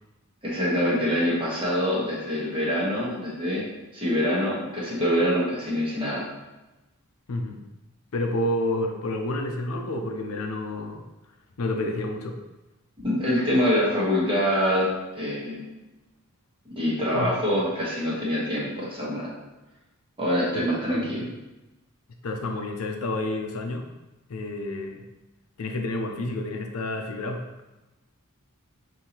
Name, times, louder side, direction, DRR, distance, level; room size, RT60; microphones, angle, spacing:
voice 1, 0.4-3.6 3.9-6.2 13.0-15.8 16.6-19.3 20.2-21.3, equal, 25° right, -6 dB, 1.2 m, -25 dB
voice 2, 8.1-11.0 11.6-12.4 17.1-17.3 20.5-20.6 20.9-21.2 22.2-23.9 24.3-25.0 25.6-27.5, left 1 dB, 75° left, 3 dB, 0.5 m, -29 dB
5.4 x 2.7 x 2.9 m, 1.0 s
head